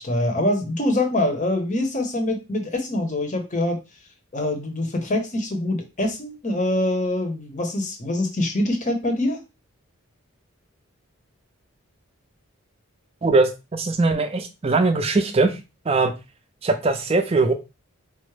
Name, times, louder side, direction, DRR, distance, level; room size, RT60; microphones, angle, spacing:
voice 1, 0.0-3.8 4.3-9.4, left 1 dB, 35° left, 0.7 m, -24 dB
voice 2, 13.2-15.6 15.9-16.1 16.6-17.5, right 3 dB, 25° right, 0.4 m, -20 dB
4.5 x 2.1 x 3.2 m
head